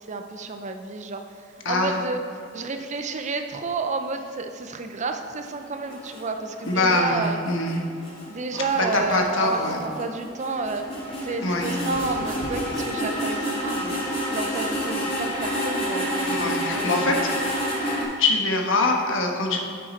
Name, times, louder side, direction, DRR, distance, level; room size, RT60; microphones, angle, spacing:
voice 1, 0.1-1.2 1.7-2.2 2.5-7.4 8.3-10.8 11.2-17.2, right 3 dB, 35° right, 6 dB, 0.6 m, -31 dB
voice 2, 1.6-1.9 6.7-7.7 8.6-9.8 11.4-11.7 16.3-17.2 18.2-19.7, left 2 dB, 65° left, 2 dB, 1.3 m, -23 dB
sound 1, 5.4-18.0, equal, 30° left, 2.6 m, -29 dB
sound 2, 8.5-10.1 10.7-10.8 11.5-11.6 12.2-12.3, right 2 dB, 55° right, 1.0 m, -37 dB
9.9 x 7.6 x 4.4 m, 2.3 s
head